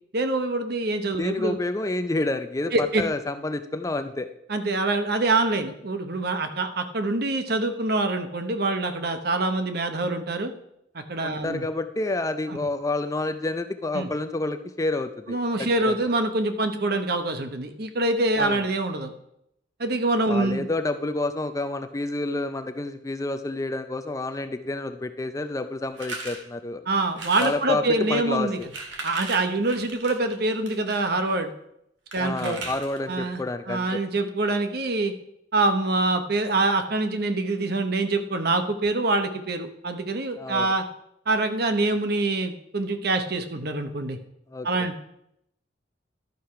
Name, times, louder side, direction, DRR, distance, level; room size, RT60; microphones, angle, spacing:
voice 1, 0.1-1.6 2.7-3.0 4.5-10.5 10.9-11.6 12.5-12.6 13.9-14.1 15.3-19.1 19.8-20.7 26.9-28.7 29.0-31.5 32.1-32.6 33.1-33.4 33.7-35.1 35.5-40.9 41.3-44.2 44.6-44.9, right 2 dB, 55° right, 8 dB, 0.9 m, -25 dB
voice 2, 1.2-4.3 11.2-15.9 18.4-18.6 20.3-26.8 27.4-27.8 28.1-28.7 32.2-34.0 40.4-40.7 44.5-44.7, left 2 dB, 15° left, 9 dB, 0.4 m, -29 dB
sound 1, 25.9-26.4 27.1-27.6 28.5-31.0 32.1-33.1, right 3 dB, 80° right, 1.9 m, -37 dB
12.0 x 4.8 x 5.7 m, 0.78 s
head